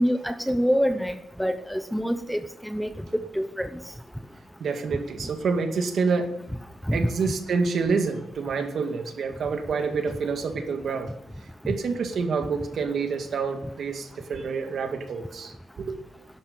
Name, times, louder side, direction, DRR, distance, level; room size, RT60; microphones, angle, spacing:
voice 1, 0.0-2.9 3.3-3.7 6.9-7.1, equal, ahead, 9 dB, 0.8 m, -26 dB
voice 2, 4.6-6.4 6.9-11.1 11.7-16.0, right 5 dB, 55° right, 5 dB, 2.2 m, -27 dB
12.0 x 12.0 x 8.7 m, 0.80 s
wide cardioid pair, 170°, 0 cm